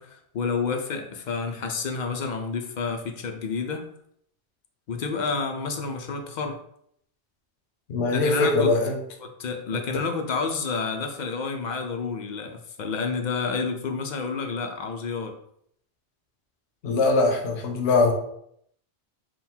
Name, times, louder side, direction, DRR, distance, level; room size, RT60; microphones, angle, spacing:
voice 1, 0.0-3.8 4.9-6.6 8.1-8.7 9.2-15.4, left 5 dB, 55° left, 4 dB, 0.5 m, -29 dB
voice 2, 7.9-9.0 16.8-18.1, left 3 dB, 75° left, 2 dB, 0.9 m, -22 dB
3.7 x 2.2 x 4.3 m, 0.70 s
omnidirectional pair, 1.1 m